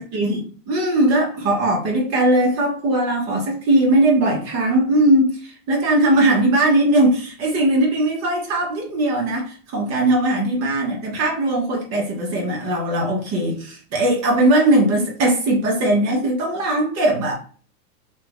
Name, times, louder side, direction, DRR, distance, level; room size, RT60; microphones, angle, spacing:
voice 1, 0.0-17.3, right 1 dB, 35° right, -1 dB, 1.1 m, -19 dB
2.9 x 2.3 x 3.4 m, 0.41 s
hypercardioid pair, 130°, 47 cm